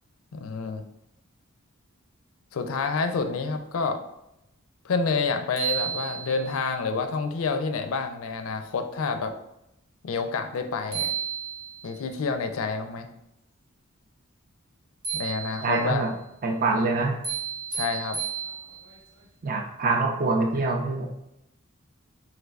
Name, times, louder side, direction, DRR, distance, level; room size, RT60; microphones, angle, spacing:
voice 1, 0.3-0.8 2.5-4.0 4.8-9.3 10.0-11.1 11.8-13.1 15.1-16.0 17.7-18.2, left 4 dB, 75° left, 7 dB, 0.4 m, -28 dB
sound 1, 5.1-5.2 5.6-6.6 10.5-10.6 10.9-12.0 15.0-15.9 17.2-19.0, right 8 dB, 75° right, 1.1 m, -32 dB
voice 2, 15.6-16.1 16.4-17.2 19.4-21.1, right 3 dB, 40° right, 2 dB, 0.4 m, -25 dB
4.5 x 3.3 x 2.3 m, 0.85 s
head